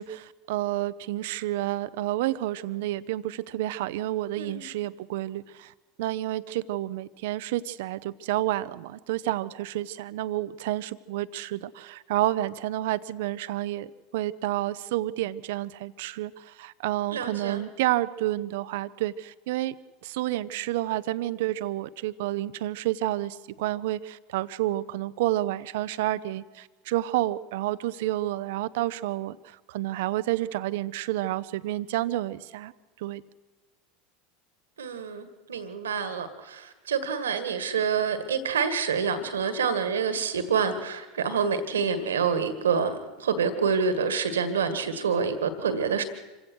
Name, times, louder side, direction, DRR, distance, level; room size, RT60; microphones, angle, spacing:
voice 1, 0.0-5.7 6.0-19.7 20.0-32.7 33.0-33.2, right 15 dB, 65° right, 15 dB, 0.7 m, -30 dB
voice 2, 4.4-4.7 17.1-17.6 34.8-46.0, right 6 dB, 85° right, 10 dB, 1.9 m, -27 dB
26.5 x 16.0 x 6.3 m, 1.2 s
hypercardioid pair, 85°, 0 cm